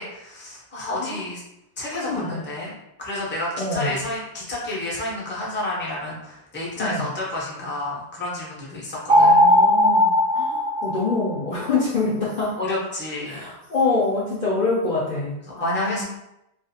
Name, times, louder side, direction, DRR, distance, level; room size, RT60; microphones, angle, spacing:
voice 1, 0.0-1.4 1.8-2.7 3.0-9.4 12.6-13.4 15.6-16.0, left 1 dB, 15° left, -5 dB, 0.5 m, -30 dB
voice 2, 2.0-2.4 3.6-4.0 6.8-7.1 9.1-12.6 13.3-16.0, left 3 dB, 55° left, -6 dB, 0.6 m, -25 dB
sound 1, 9.1-11.5, left 1 dB, 70° right, 0.8 m, -17 dB
2.4 x 2.4 x 2.7 m, 0.84 s
omnidirectional pair, 1.1 m